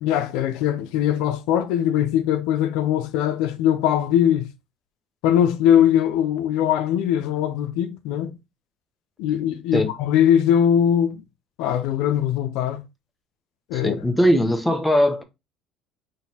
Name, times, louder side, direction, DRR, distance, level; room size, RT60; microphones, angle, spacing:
voice 1, 0.0-4.5 5.2-8.4 9.2-11.2 11.6-12.8 13.7-14.0, left 10 dB, 80° left, 0.6 m, -21 dB
voice 2, 13.7-15.2, equal, 5° left, 1.0 m, -20 dB
3.9 x 3.2 x 4.2 m
supercardioid pair, 95°, 0 cm